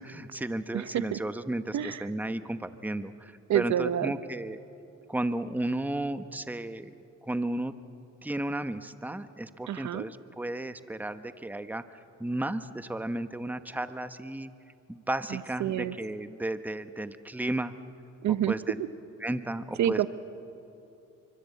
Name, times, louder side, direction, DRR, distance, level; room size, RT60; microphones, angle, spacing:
voice 1, 0.0-4.6 5.1-6.9 7.2-7.7 8.2-11.8 12.2-14.5 14.9-17.7 18.3-18.8 19.2-20.0, right 1 dB, 5° right, 11 dB, 1.0 m, -33 dB
voice 2, 0.7-1.2 1.7-2.1 3.5-4.1 9.7-10.0 15.3-15.9 18.2-18.5 19.8-20.1, right 11 dB, 70° right, 13 dB, 0.9 m, -28 dB
27.5 x 24.5 x 8.4 m, 2.8 s
cardioid pair, 90°, 30 cm